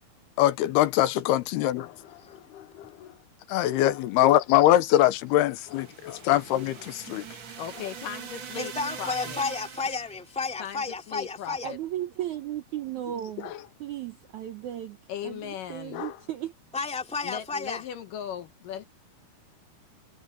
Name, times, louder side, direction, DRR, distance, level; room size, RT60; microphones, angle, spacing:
voice 1, 0.4-2.2 2.5-3.1 3.5-7.3 13.4-13.5 15.9-16.1, left 14 dB, 85° left, 2.9 m, -23 dB
sound 1, 5.3-10.3, right 7 dB, 60° right, 1.2 m, -42 dB
voice 2, 7.6-8.7 9.0-9.4 10.6-11.8 15.1-16.0 17.2-18.8, left 9 dB, 70° left, 2.3 m, -37 dB
voice 3, 8.6-11.7 16.7-17.8, left 4 dB, ahead, 1.6 m, -32 dB
voice 4, 11.6-13.5 13.8-15.0 15.2-16.5, right 12 dB, 75° right, 1.7 m, -35 dB
omnidirectional pair, 4.6 m